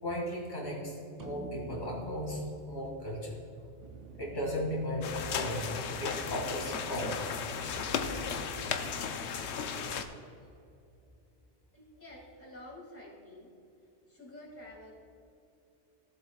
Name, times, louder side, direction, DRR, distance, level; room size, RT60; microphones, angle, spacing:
voice 1, 0.0-3.4 4.1-5.7 6.0-7.2 9.5-9.9, equal, 45° left, -2 dB, 2.2 m, -36 dB
sound 1, 1.2-5.7, equal, 25° right, 0.4 m, -49 dB
sound 2, 3.8-9.0, right 8 dB, 65° right, 0.8 m, -50 dB
sound 3, 5.0-10.1, left 6 dB, 90° left, 0.9 m, -35 dB
voice 2, 11.7-13.5 14.1-14.9, left 1 dB, 10° left, -4 dB, 2.1 m, -49 dB
15.5 x 7.7 x 2.3 m, 2.7 s
omnidirectional pair, 1.1 m